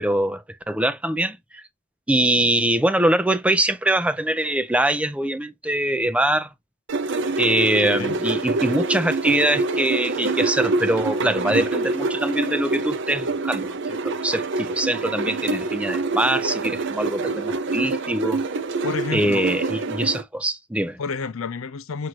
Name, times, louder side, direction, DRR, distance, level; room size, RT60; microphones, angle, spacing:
voice 1, 0.0-1.6 2.1-6.5 7.4-13.7 14.0-18.4 19.1-21.0, right 1 dB, 5° right, 0.4 m, -23 dB
sound 1, 6.9-20.2, right 3 dB, 60° right, 0.6 m, -26 dB
voice 2, 7.6-8.2 11.2-11.7 18.8-19.6 21.0-22.1, left 5 dB, 85° left, 0.5 m, -31 dB
6.1 x 2.5 x 2.9 m
head